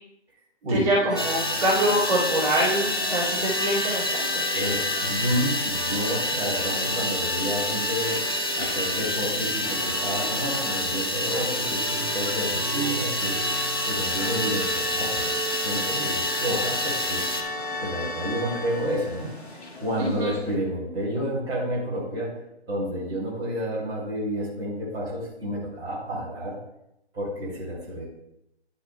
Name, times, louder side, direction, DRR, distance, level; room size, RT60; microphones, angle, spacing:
voice 1, 0.7-4.4 20.0-20.3, right 1 dB, 30° right, -9 dB, 2.2 m, -25 dB
sound 1, 1.1-20.5, left 1 dB, 70° left, 1.8 m, -33 dB
sound 2, 1.2-17.4, left 1 dB, 25° left, 0.4 m, -28 dB
voice 2, 4.5-13.4 13.8-17.2 17.8-19.3 19.8-22.3 22.7-26.6 27.1-28.1, equal, 15° right, -8 dB, 2.7 m, -30 dB
11.0 x 8.3 x 2.2 m, 0.81 s
figure-of-eight pair, 145°, 34 cm